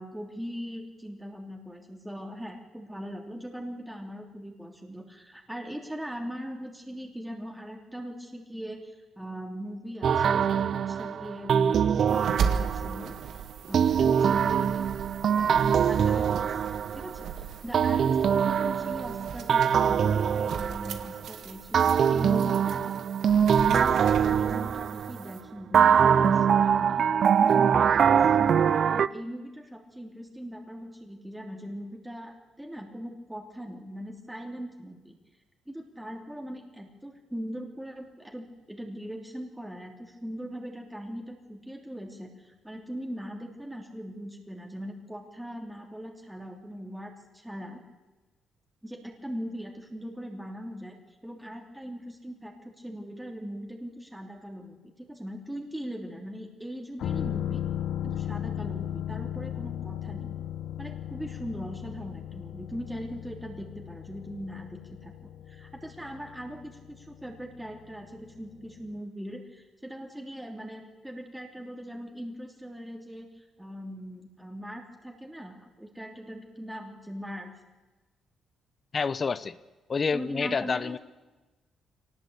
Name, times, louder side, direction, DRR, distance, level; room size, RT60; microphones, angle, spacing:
voice 1, 0.0-14.8 15.4-16.5 16.9-27.0 27.4-35.2 35.7-47.8 48.8-51.0 51.2-57.6 58.0-60.3 60.8-77.5 80.1-81.0, equal, 5° right, 1 dB, 3.1 m, -40 dB
sound 1, 10.0-13.1 13.7-17.3 17.7-21.3 21.7-25.2 25.7-29.1, right 7 dB, 55° right, 0.7 m, -23 dB
sound 2, 12.1-25.4, right 6 dB, 75° right, 2.0 m, -37 dB
sound 3, 57.0-68.6 68.9-69.0, left 10 dB, 75° left, 1.1 m, -36 dB
voice 2, 78.9-79.5 79.9-81.0, left 5 dB, 40° left, 15 dB, 0.9 m, -28 dB
23.0 x 19.0 x 8.5 m, 1.2 s
cardioid pair, 90°, 0 cm